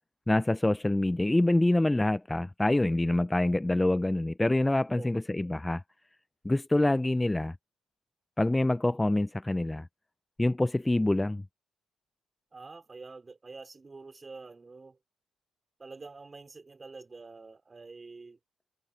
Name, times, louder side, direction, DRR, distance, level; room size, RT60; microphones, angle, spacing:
voice 1, 0.3-5.8 6.4-7.6 8.4-9.9 10.4-11.4, left 1 dB, 10° left, 0.4 m, -26 dB
voice 2, 12.5-15.0 15.8-18.4, right 3 dB, 25° right, 4.2 m, -47 dB
cardioid pair, 90°, 0 cm